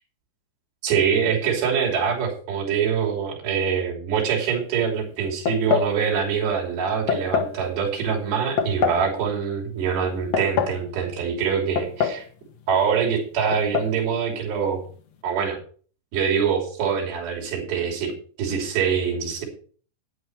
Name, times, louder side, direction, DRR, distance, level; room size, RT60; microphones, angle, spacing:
voice 1, 0.8-12.3 12.7-14.8 15.2-15.6 16.1-18.1 18.4-19.5, right 7 dB, 85° right, -1 dB, 5.3 m, -24 dB
sound 1, 5.5-5.9 7.1-7.6 8.6-9.1 10.1-10.8 11.8-12.3 12.5-12.6 13.5-13.9, left 7 dB, 80° left, 1.4 m, -24 dB
11.0 x 10.0 x 4.7 m, 0.43 s
omnidirectional pair, 4.8 m